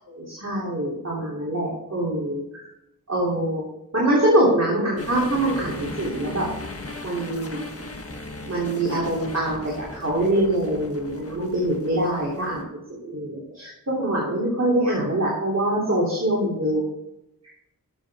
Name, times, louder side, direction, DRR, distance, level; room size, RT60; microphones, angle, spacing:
voice 1, 0.2-2.7 3.1-3.6 3.9-6.5 7.0-7.6 8.4-9.6 9.9-16.8, right 1 dB, 45° right, -5 dB, 3.3 m, -24 dB
sound 1, 5.0-12.6, left 2 dB, 40° left, 1.6 m, -38 dB
13.0 x 7.3 x 3.7 m, 0.86 s
wide cardioid pair, 70°, 35 cm